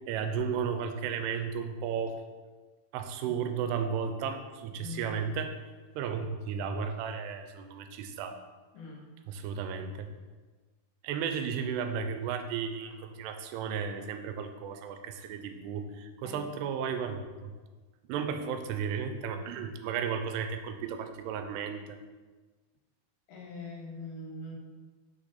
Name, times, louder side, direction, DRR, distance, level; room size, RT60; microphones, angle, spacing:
voice 1, 0.0-2.2 2.9-5.5 6.0-8.4 9.3-10.1 11.0-17.5 18.1-21.8, right 6 dB, 90° right, 7 dB, 2.7 m, -34 dB
voice 2, 4.8-5.2 8.7-9.1 16.2-16.5 23.3-24.6, left 2 dB, 65° left, -1 dB, 2.8 m, -42 dB
6.1 x 6.1 x 3.9 m, 1.3 s
omnidirectional pair, 4.7 m